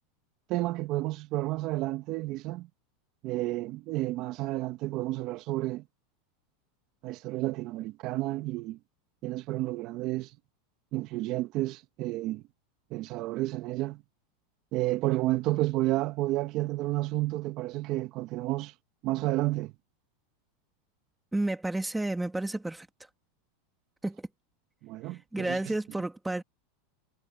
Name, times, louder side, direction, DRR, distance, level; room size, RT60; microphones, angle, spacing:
voice 1, 0.5-2.7 3.2-5.8 7.0-8.8 9.2-10.3 10.9-12.4 12.9-14.0 14.7-18.7 19.0-19.7 24.8-25.6, right 18 dB, 50° right, 1.4 m, -31 dB
voice 2, 21.3-22.9 24.0-24.3 25.3-26.4, right 2 dB, 5° right, 2.1 m, -31 dB
supercardioid pair, 130°, 0 cm